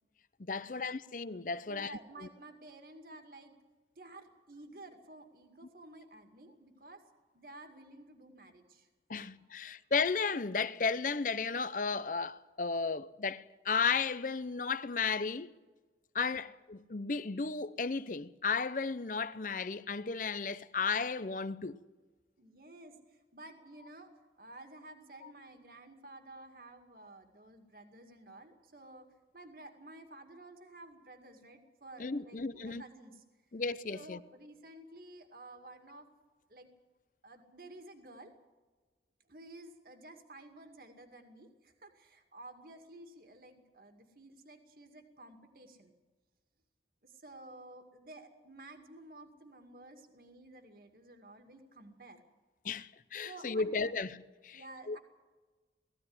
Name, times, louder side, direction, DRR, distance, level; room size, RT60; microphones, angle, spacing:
voice 1, 0.4-2.3 9.1-15.5 16.1-21.8 32.0-32.8 33.5-34.2 52.6-54.6 54.9-55.0, left 5 dB, 45° left, 0.7 m, -34 dB
voice 2, 1.7-3.5 4.0-7.0 7.3-8.9 9.6-9.7 16.1-16.5 22.4-24.1 24.4-29.1 29.3-33.2 33.8-36.1 36.5-36.7 37.2-38.3 39.3-45.9 47.0-52.2 53.3-53.9 54.5-55.0, right 2 dB, 55° right, 2.2 m, -52 dB
19.5 x 15.0 x 9.6 m
head